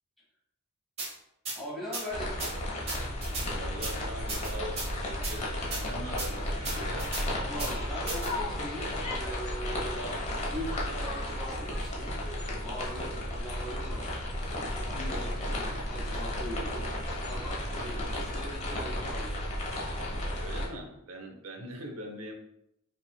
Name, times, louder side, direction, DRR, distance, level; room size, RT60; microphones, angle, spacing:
sound 1, 1.0-1.1 1.5-1.6 1.9-2.0 2.4-2.5 2.9-3.5 3.8-3.9 4.3-4.9 5.2-5.3 5.7-5.8 6.2-6.3 6.6-7.2 7.6-7.7 8.1-8.3, right 3 dB, 30° right, 1.2 m, -35 dB
voice 1, 1.5-2.3 7.3-10.1 10.4-12.2 12.6-16.9 17.2-19.4, equal, ahead, -7 dB, 1.6 m, -41 dB
sound 2, 2.1-20.7, left 1 dB, 30° left, 1.0 m, -33 dB
voice 2, 3.5-7.1 9.9-10.2 15.5-15.8 17.7-18.4 20.4-22.3, right 1 dB, 80° right, 3 dB, 0.8 m, -42 dB
5.5 x 3.6 x 2.2 m, 0.83 s
head